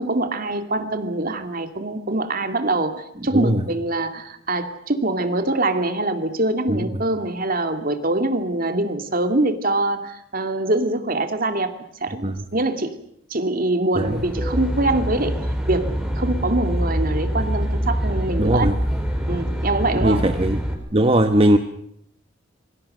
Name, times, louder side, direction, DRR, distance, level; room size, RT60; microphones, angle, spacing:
voice 1, 0.0-11.7 12.0-13.0 13.3-15.4 15.7-18.7 19.3-20.2, right 2 dB, 45° right, 8 dB, 2.4 m, -24 dB
Aircraft, 14.0-20.7, equal, 5° right, 4.7 m, -25 dB
voice 2, 18.4-18.8 20.0-20.6 20.9-21.6, right 1 dB, 30° right, 7 dB, 1.1 m, -18 dB
26.5 x 24.0 x 6.7 m, 0.74 s
head